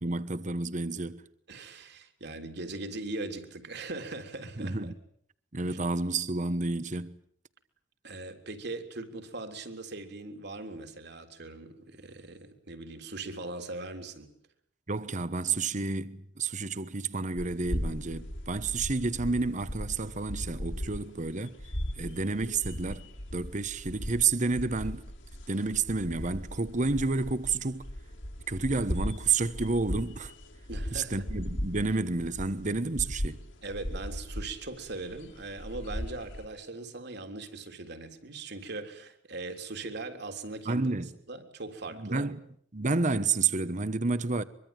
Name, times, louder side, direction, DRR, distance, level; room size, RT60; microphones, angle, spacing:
voice 1, 0.0-1.2 4.6-4.9 5.5-7.2 14.9-21.6 22.0-25.1 25.5-27.9 28.5-30.3 30.9-33.4 40.6-41.1 41.9-42.4 42.7-44.4, right 3 dB, 40° right, 1.1 m, -30 dB
voice 2, 1.5-4.9 5.6-5.8 8.0-14.3 30.7-31.3 33.6-40.9 41.3-42.3, right 2 dB, 60° right, 3.6 m, -40 dB
sound 1, 17.4-36.5, equal, 75° left, 4.0 m, -38 dB
24.0 x 24.0 x 9.1 m
head